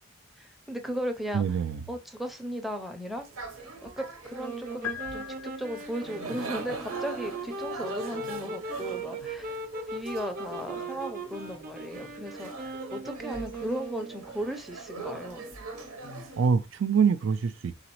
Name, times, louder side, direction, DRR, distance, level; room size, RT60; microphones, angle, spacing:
voice 1, 0.4-1.6 1.9-3.3 3.8-9.6 9.9-15.5, equal, ahead, 0.5 m, -36 dB
voice 2, 1.3-1.8 16.4-17.7, right 6 dB, 60° right, 0.3 m, -25 dB
sound 1, 3.2-16.5, right 3 dB, 85° right, 0.9 m, -42 dB
sound 2, 4.4-14.4, right 3 dB, 40° right, 0.7 m, -39 dB
sound 3, 4.8-6.2, left 10 dB, 75° left, 0.3 m, -39 dB
3.9 x 3.8 x 3.0 m
head